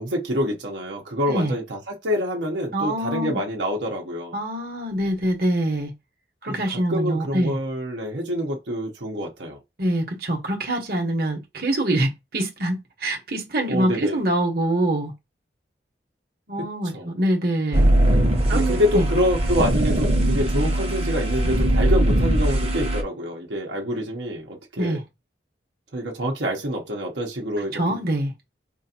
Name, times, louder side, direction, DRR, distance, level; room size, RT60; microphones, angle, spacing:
voice 1, 0.0-4.4 6.4-6.6 6.9-9.6 13.7-14.2 16.8-17.1 18.5-25.0 25.9-27.8, equal, 80° right, 0.9 m, -26 dB
voice 2, 2.7-3.4 4.3-5.9 6.4-7.5 9.8-15.1 16.5-17.9 18.5-19.1 24.8-25.0 27.7-28.3, right 1 dB, 55° right, 1.1 m, -24 dB
sound 1, 17.7-23.0, right 1 dB, 35° right, 0.8 m, -20 dB
4.5 x 2.5 x 2.8 m
head